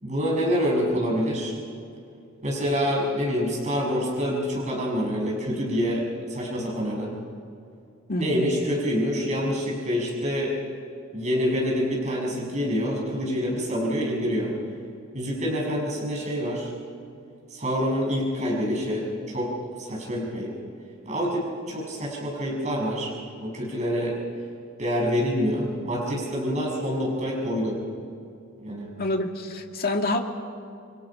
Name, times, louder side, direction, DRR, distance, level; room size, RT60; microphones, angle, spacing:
voice 1, 0.0-1.6 2.4-6.0 6.3-7.1 8.2-10.5 11.1-14.5 15.1-16.7 17.5-20.5 21.0-23.1 23.4-24.2 24.8-27.8 28.6-28.9, equal, 35° right, -3 dB, 6.6 m, -26 dB
voice 2, 8.1-8.5 29.0-30.2, left 2 dB, 50° left, 2 dB, 2.1 m, -27 dB
29.5 x 23.0 x 5.8 m, 2.5 s
head